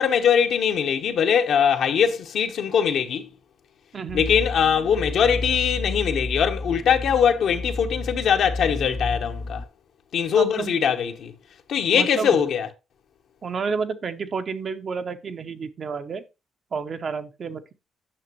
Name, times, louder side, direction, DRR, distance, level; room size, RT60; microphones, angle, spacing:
voice 1, 0.0-3.3 4.1-9.6 10.1-11.3 11.7-12.7, left 7 dB, 70° left, 0.9 m, -21 dB
voice 2, 3.9-4.3 10.3-10.8 11.9-12.4 13.4-16.2 16.7-17.7, right 5 dB, 45° right, 0.7 m, -30 dB
sound 1, 4.1-9.6, left 2 dB, 20° left, 0.5 m, -31 dB
8.8 x 5.9 x 3.0 m
cardioid pair, 90°, 0 cm